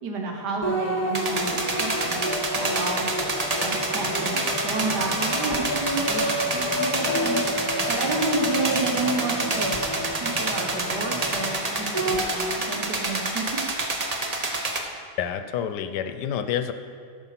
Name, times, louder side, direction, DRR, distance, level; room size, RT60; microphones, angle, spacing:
voice 1, 0.0-2.3 2.5-3.0 3.6-7.4 7.9-13.7, right 3 dB, 75° right, 2 dB, 1.8 m, -31 dB
sound 1, 0.6-12.2, equal, 10° left, 1.7 m, -30 dB
sound 2, 1.1-14.8, right 2 dB, 35° right, 0.7 m, -28 dB
voice 2, 15.2-16.7, left 9 dB, 80° left, 10 dB, 1.2 m, -28 dB
13.0 x 5.5 x 5.9 m, 2.2 s
omnidirectional pair, 1.8 m